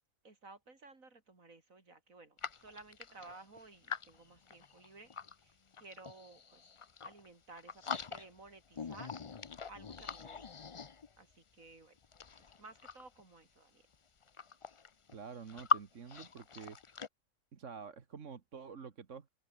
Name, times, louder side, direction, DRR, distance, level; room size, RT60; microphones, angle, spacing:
voice 1, 0.2-5.1 5.4-6.6 7.0-9.2 9.7-10.5 11.2-12.0 12.4-13.9, right 3 dB, 85° right, 4.1 m, -55 dB
sound 1, 2.4-5.4 5.7-7.3 7.6-8.5 8.7-11.3 12.0-13.2 13.9-14.0 14.2-15.8 16.1-17.1, left 5 dB, 35° left, 0.5 m, -41 dB
voice 2, 15.1-16.8 17.5-19.3, right 6 dB, 65° right, 1.8 m, -48 dB
omnidirectional pair, 1.4 m